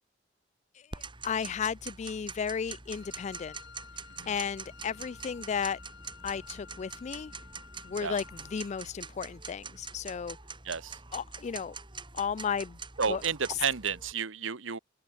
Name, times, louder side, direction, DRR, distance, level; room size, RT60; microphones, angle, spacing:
voice 1, 0.8-3.5 4.3-5.8 6.2-7.3 7.8-10.4 11.1-11.8 12.1-12.8 13.1-13.2 13.5-13.6, left 7 dB, 35° left, 0.3 m, -34 dB
Tick-tock, 0.9-14.1, right 5 dB, 25° right, 4.3 m, -45 dB
Wind instrument woodwind instrument, 2.9-8.9, left 7 dB, 60° left, 2.3 m, -53 dB
voice 2, 10.6-11.0 13.0-14.8, right 6 dB, 75° right, 1.3 m, -31 dB
head